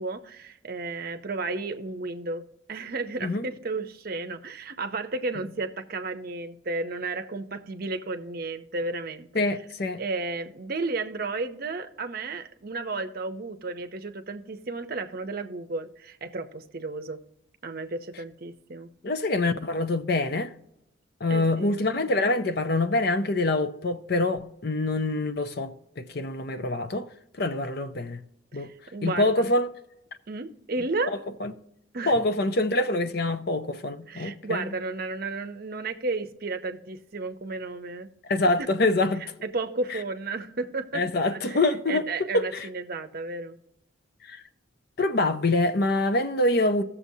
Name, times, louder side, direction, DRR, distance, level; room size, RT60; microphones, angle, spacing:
voice 1, 0.0-9.4 10.0-17.2 17.6-18.9 21.3-21.8 28.5-29.5 30.3-31.2 31.9-32.3 34.1-38.1 38.6-38.7 39.2-41.6 41.9-43.6, right 3 dB, 45° right, 0.7 m, -33 dB
voice 2, 9.3-10.0 19.0-20.5 21.2-27.1 27.4-28.2 28.5-28.7 29.0-29.7 31.1-31.5 32.1-34.7 38.3-39.3 40.9-42.0 42.5-42.7 44.3-44.4 45.0-46.8, left 2 dB, 50° left, 0.6 m, -25 dB
17.0 x 7.0 x 2.7 m
head